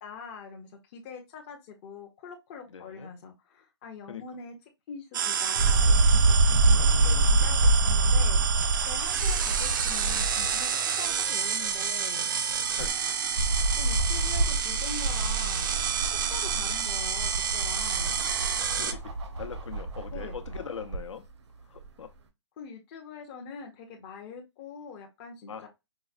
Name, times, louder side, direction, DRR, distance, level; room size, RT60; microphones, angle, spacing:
voice 1, 0.0-4.5 4.9-8.4 8.9-10.7 11.0-12.3 13.5-15.8 16.3-18.2 20.1-20.4 22.6-25.7, left 5 dB, 25° left, 0.5 m, -44 dB
voice 2, 2.7-3.1 4.1-4.2 6.5-7.3 7.8-7.9 12.8-13.0 18.7-21.3 21.7-22.1 25.5-25.7, left 7 dB, 80° left, 0.7 m, -41 dB
sound 1, 5.1-18.9, right 7 dB, 45° right, 0.4 m, -29 dB
sound 2, 5.6-10.6 11.1-11.2 12.5-21.0 21.8-21.9, right 2 dB, 65° right, 0.8 m, -26 dB
4.6 x 2.0 x 2.4 m
hypercardioid pair, 160°, 15 cm